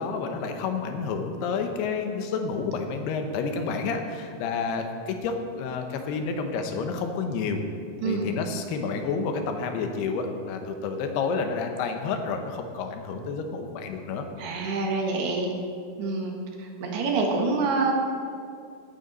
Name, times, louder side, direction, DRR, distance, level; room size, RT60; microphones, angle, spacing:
voice 1, 0.0-7.6 8.0-14.2, left 5 dB, 85° left, 5 dB, 3.1 m, -29 dB
voice 2, 8.0-8.4 14.4-15.5 16.0-17.9, right 3 dB, 85° right, 1 dB, 3.6 m, -27 dB
16.5 x 10.0 x 4.1 m, 2.3 s
omnidirectional pair, 4.5 m